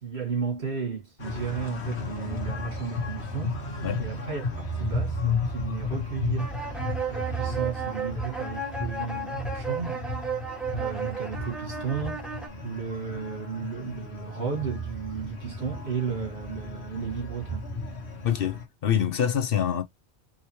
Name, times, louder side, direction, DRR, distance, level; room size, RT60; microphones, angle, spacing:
voice 1, 0.0-6.5 7.1-10.0 10.7-12.2 12.6-17.7, right 7 dB, 75° right, 2.2 m, -34 dB
sound 1, 1.2-18.6, left 2 dB, 85° left, 1.7 m, -34 dB
sound 2, 6.4-12.5, right 4 dB, ahead, 1.2 m, -34 dB
voice 2, 18.2-19.8, left 9 dB, 60° left, 0.9 m, -25 dB
4.8 x 3.0 x 3.0 m
omnidirectional pair, 1.1 m